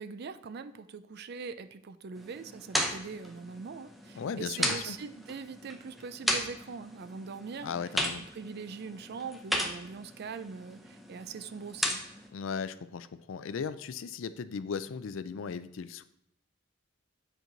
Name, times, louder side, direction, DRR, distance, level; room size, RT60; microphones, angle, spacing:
voice 1, 0.0-7.7 8.3-12.0, right 5 dB, 55° right, 12 dB, 0.4 m, -42 dB
sound 1, 2.2-12.3, equal, ahead, 0.7 m, -36 dB
voice 2, 4.2-5.0 7.6-8.2 12.3-16.0, left 6 dB, 75° left, 13 dB, 0.4 m, -37 dB
7.9 x 4.6 x 3.9 m, 0.80 s
head